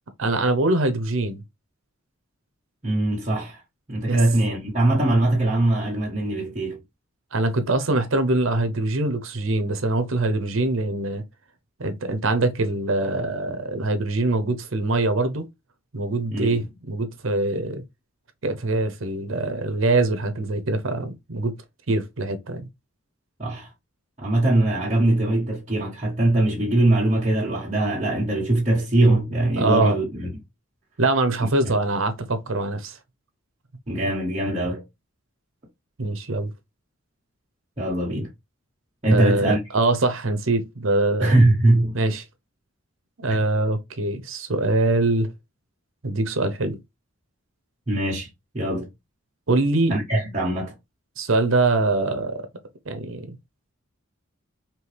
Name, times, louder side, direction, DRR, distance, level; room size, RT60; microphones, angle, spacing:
voice 1, 0.2-1.4 4.1-4.2 7.3-11.2 11.8-15.5 15.9-17.8 18.4-21.6 21.9-22.7 29.6-29.9 31.0-33.0 36.0-36.5 39.0-41.4 41.9-42.2 43.2-45.3 46.0-46.8 49.5-49.9 51.2-52.4 52.9-53.3, right 2 dB, 70° right, 0.8 m, -23 dB
voice 2, 2.8-3.6 3.9-6.8 16.3-16.6 23.4-23.7 24.2-30.3 31.6-31.7 33.9-34.8 37.8-38.3 39.0-39.6 41.2-42.0 43.3-43.4 47.9-48.3 48.5-48.9 49.9-50.7, right 1 dB, 35° right, 1.5 m, -21 dB
4.6 x 2.8 x 3.4 m
head